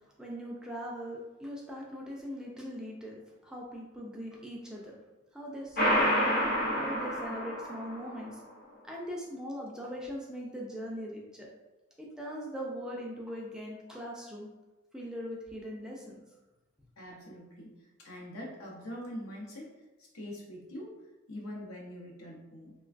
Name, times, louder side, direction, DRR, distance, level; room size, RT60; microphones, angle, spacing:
voice 1, 0.2-5.0 5.3-6.3 6.7-8.4 8.8-11.5 12.0-14.5 14.9-16.2, equal, 5° right, -3 dB, 0.3 m, -40 dB
sound 1, 5.8-8.2, equal, 45° left, 0.8 m, -28 dB
voice 2, 17.0-17.7 18.0-19.7 20.0-20.9 21.3-22.7, left 1 dB, 75° left, -3 dB, 0.7 m, -43 dB
3.1 x 2.2 x 2.4 m, 1.1 s
head